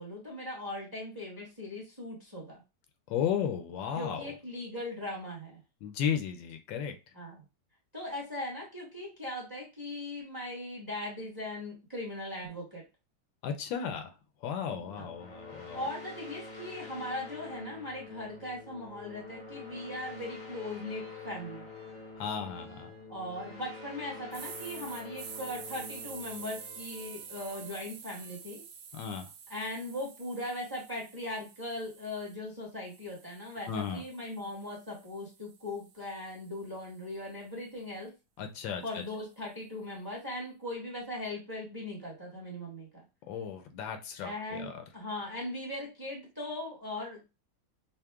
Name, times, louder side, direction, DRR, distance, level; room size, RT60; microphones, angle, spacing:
voice 1, 0.0-2.6 3.9-5.6 7.1-7.4 7.9-12.8 15.0-15.1 15.7-21.7 23.1-28.6 29.5-38.1 38.8-43.0 44.2-47.2, left 1 dB, 15° right, -3 dB, 0.9 m, -39 dB
voice 2, 3.1-4.3 5.8-6.9 13.4-14.1 14.4-15.9 22.2-22.9 28.9-29.3 33.7-34.0 38.4-39.0 43.3-44.8, left 8 dB, 85° left, 7 dB, 1.4 m, -34 dB
sound 1, 14.6-28.0, left 3 dB, 40° left, 0.7 m, -47 dB
sound 2, 20.1-28.4, left 1 dB, 45° right, 1.6 m, -58 dB
sound 3, 24.3-32.4 32.9-37.1, right 7 dB, 75° right, 1.2 m, -48 dB
5.5 x 2.1 x 2.3 m, 0.27 s
omnidirectional pair, 2.0 m